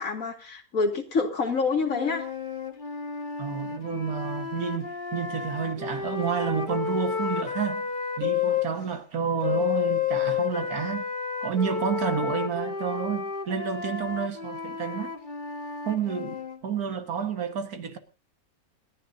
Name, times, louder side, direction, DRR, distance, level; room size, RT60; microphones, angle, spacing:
voice 1, 0.0-2.2, left 4 dB, 65° left, 2.6 m, -27 dB
sound 1, 1.7-8.7 9.4-16.6, left 7 dB, 35° left, 1.6 m, -31 dB
voice 2, 3.4-7.9 8.2-11.1 11.4-15.1 15.8-18.0, right 7 dB, 85° right, 2.0 m, -30 dB
28.0 x 10.5 x 2.7 m
omnidirectional pair, 1.6 m